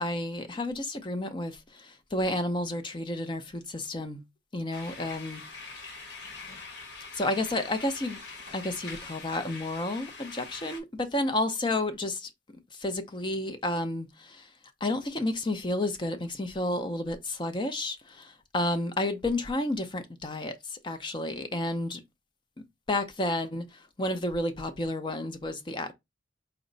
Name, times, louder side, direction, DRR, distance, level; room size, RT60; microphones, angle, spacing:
voice 1, 0.0-4.2 4.5-5.4 7.2-8.2 8.5-12.3 12.8-14.5 14.8-22.0 22.9-25.9, left 1 dB, 25° left, 0.5 m, -31 dB
sound 1, 4.7-10.8, left 4 dB, 90° left, 1.1 m, -44 dB
4.3 x 2.0 x 3.8 m
head